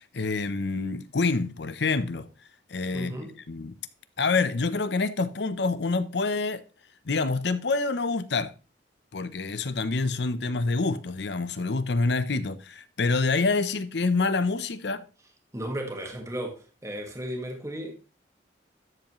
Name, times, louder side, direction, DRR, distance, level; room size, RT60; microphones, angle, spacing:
voice 1, 0.0-2.3 2.7-3.2 3.5-3.8 4.2-6.6 7.1-8.5 9.1-15.0, left 3 dB, 70° left, 0.7 m, -27 dB
voice 2, 2.9-3.4 15.5-18.0, right 1 dB, 15° right, 1.7 m, -35 dB
12.5 x 7.2 x 3.1 m
head